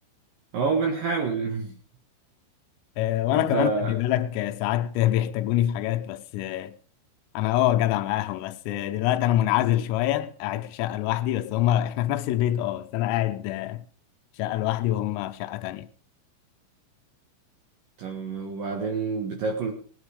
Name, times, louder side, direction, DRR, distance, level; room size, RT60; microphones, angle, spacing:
voice 1, 0.5-1.7 3.3-4.0 18.0-19.7, right 4 dB, 65° right, 2.4 m, -27 dB
voice 2, 3.0-6.7 7.3-13.9 14.4-15.9, left 13 dB, 90° left, 3.5 m, -25 dB
19.5 x 8.9 x 4.9 m
omnidirectional pair, 5.9 m